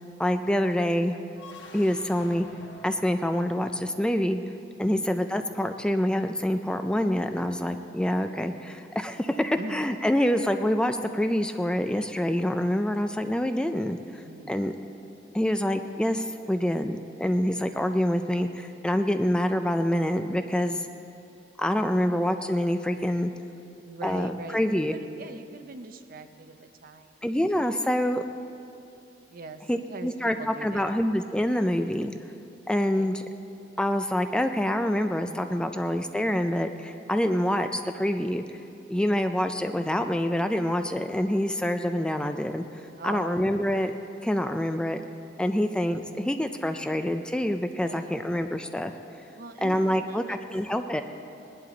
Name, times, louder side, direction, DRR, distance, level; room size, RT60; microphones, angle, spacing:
voice 1, 0.2-1.2 1.7-2.5 2.8-4.4 4.8-14.7 15.3-20.9 21.6-23.3 24.0-24.9 27.2-28.2 29.7-32.1 32.7-33.2 33.8-38.4 38.9-42.6 43.0-43.9 44.2-45.0 45.4-48.9 49.6-51.0, equal, 5° left, 7 dB, 0.3 m, -26 dB
sound 1, 1.3-4.3, left 2 dB, 75° left, 1.4 m, -47 dB
voice 2, 4.8-5.1 9.6-9.9 14.2-14.6 23.8-27.2 29.3-30.9 32.9-33.1 43.0-43.5 47.8-48.1 49.3-50.4, right 3 dB, 50° right, 8 dB, 0.7 m, -42 dB
19.5 x 11.0 x 3.9 m, 2.6 s
head